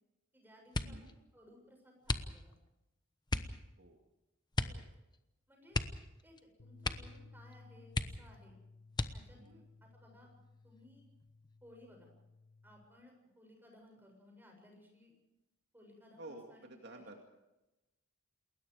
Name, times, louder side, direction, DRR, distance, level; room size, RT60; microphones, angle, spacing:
voice 1, 0.3-2.5 5.5-5.8 6.2-8.6 9.1-10.3 10.6-11.0 11.6-12.1 12.6-15.1 15.7-17.3, left 1 dB, 10° right, 1 dB, 7.2 m, -60 dB
sound 1, 0.7-1.1 2.0-2.7 3.3-3.6 4.5-4.9 5.1-5.2 5.7-6.4 6.8-7.2 7.5-7.6 7.9-8.4 8.9-9.5 10.2-10.8 11.2-11.6, left 2 dB, 20° left, 1.0 m, -37 dB
sound 2, 6.6-12.8, left 3 dB, 65° left, 1.6 m, -59 dB
voice 2, 9.3-9.6 16.2-17.2, right 2 dB, 55° right, 2 dB, 2.4 m, -52 dB
28.5 x 21.0 x 5.0 m, 0.98 s
head